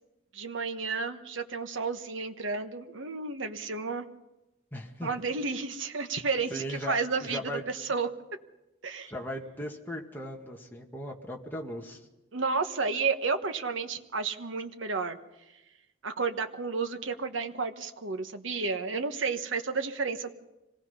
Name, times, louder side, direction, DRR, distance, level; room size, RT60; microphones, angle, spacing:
voice 1, 0.3-4.1 5.0-7.4 7.7-8.1 8.8-9.1 12.3-15.2 16.0-20.3, right 4 dB, 85° right, 7 dB, 1.3 m, -31 dB
voice 2, 4.7-5.1 6.5-7.6 9.1-12.0, equal, 10° left, 0 dB, 1.8 m, -38 dB
25.5 x 18.5 x 5.6 m, 0.99 s
head